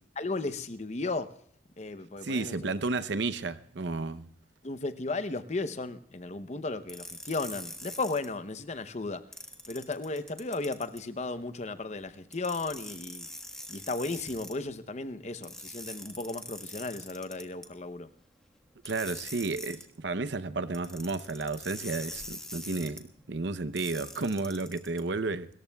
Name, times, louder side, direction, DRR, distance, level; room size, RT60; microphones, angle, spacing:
voice 1, 0.2-1.4 1.8-2.7 4.6-9.2 9.7-13.3 13.7-18.1, left 3 dB, 35° left, 0.8 m, -35 dB
voice 2, 2.2-4.2 18.8-25.5, right 3 dB, 65° right, 0.7 m, -32 dB
sound 1, 6.9-8.3 9.3-11.0 12.3-14.5 15.4-17.7 18.8-19.9 20.7-23.0 23.8-25.0, left 1 dB, 5° left, 1.4 m, -43 dB
29.0 x 14.5 x 2.3 m
head